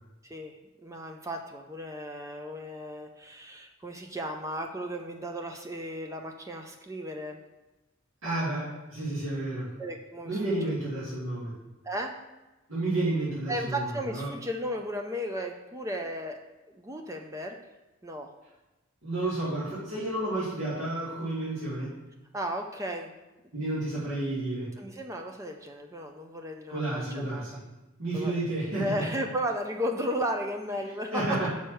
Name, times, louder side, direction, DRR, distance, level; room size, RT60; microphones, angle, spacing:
voice 1, 0.8-7.4 9.8-10.7 11.8-12.1 13.5-16.4 16.7-17.6 18.0-18.3 21.2-21.3 22.3-23.2 24.8-27.5 28.1-28.4 28.8-31.5, equal, 15° right, 3 dB, 0.5 m, -35 dB
voice 2, 8.2-9.7 10.2-11.5 12.7-14.3 19.0-21.9 23.5-24.7 26.7-27.6 28.0-29.1 31.1-31.5, right 2 dB, 85° right, -10 dB, 2.6 m, -31 dB
5.7 x 4.5 x 6.4 m, 1.1 s
head